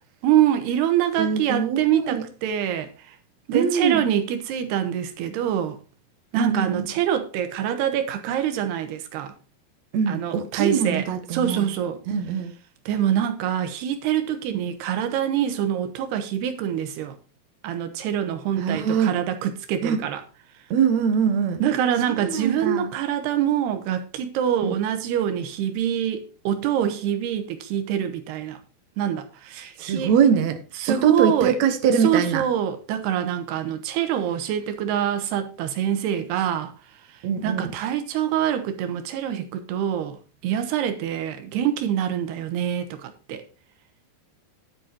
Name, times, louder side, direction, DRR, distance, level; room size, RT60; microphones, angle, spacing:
voice 1, 0.2-2.9 3.5-5.8 6.3-9.3 10.1-11.1 11.3-12.0 12.9-17.2 17.6-20.2 21.6-28.6 29.0-30.1 30.8-31.6 32.0-36.7 37.4-40.2 40.4-43.4, right 10 dB, 90° right, 3.3 m, -25 dB
voice 2, 1.2-2.3 3.5-4.1 6.4-6.9 9.9-11.7 12.1-12.5 14.5-14.7 18.6-19.2 19.8-20.0 20.7-21.6 22.1-22.9 24.6-24.8 29.8-30.6 30.9-32.5 34.1-34.2 37.2-37.7, right 7 dB, 55° right, 2.2 m, -23 dB
11.0 x 8.4 x 4.5 m
omnidirectional pair, 4.6 m